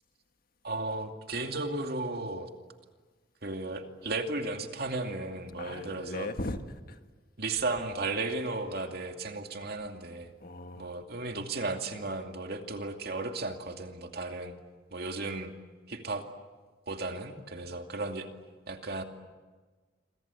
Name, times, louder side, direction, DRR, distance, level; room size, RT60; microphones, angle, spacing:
voice 1, 0.6-2.5 3.4-6.3 7.4-10.3 10.8-14.6 14.9-15.5 15.9-16.2 16.9-18.3 18.7-19.0, right 2 dB, 60° right, 2.5 m, -35 dB
voice 2, 5.6-7.0 9.6-9.8 10.4-11.0, left 1 dB, 55° left, 1.7 m, -39 dB
27.5 x 24.0 x 8.4 m
head